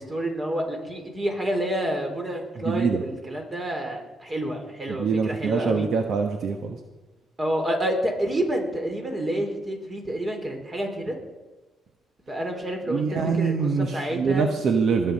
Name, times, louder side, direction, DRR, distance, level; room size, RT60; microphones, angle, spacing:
voice 1, 0.0-5.9 7.4-11.2 12.3-14.5, right 1 dB, 30° right, 3 dB, 3.7 m, -29 dB
voice 2, 2.6-3.0 5.0-6.8 12.9-15.1, right 5 dB, 65° right, 5 dB, 1.1 m, -24 dB
20.5 x 8.0 x 5.3 m, 1.2 s
cardioid pair, 90°, 0 cm